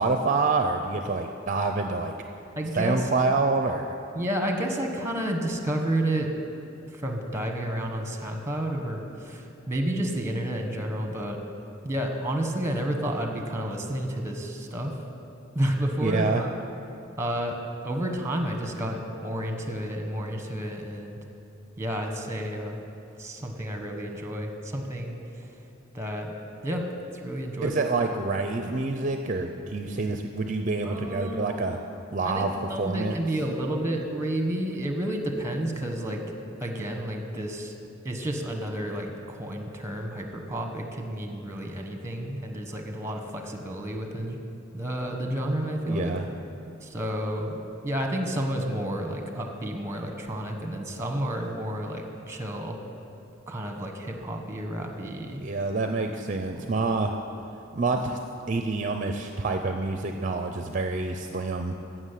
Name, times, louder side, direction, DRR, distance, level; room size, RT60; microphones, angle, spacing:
voice 1, 0.0-2.1 2.8-3.9 16.0-16.4 27.6-31.8 32.1-32.5 32.8-33.2 45.9-46.3 55.4-57.2 57.7-58.2 58.5-61.7, right 3 dB, 40° right, 5 dB, 0.6 m, -27 dB
voice 2, 2.6-3.1 4.1-6.3 6.9-11.4 11.8-14.9 15.5-16.5 17.2-17.6 17.8-21.2 21.8-22.8 23.2-25.5 25.9-26.4 26.6-26.9 27.2-27.8 30.8-31.5 32.2-36.2 36.6-37.7 38.0-44.4 44.7-46.1 46.8-47.6 47.8-52.8 53.5-55.4, right 1 dB, 15° right, 3 dB, 1.3 m, -30 dB
15.0 x 6.2 x 8.3 m, 2.7 s
head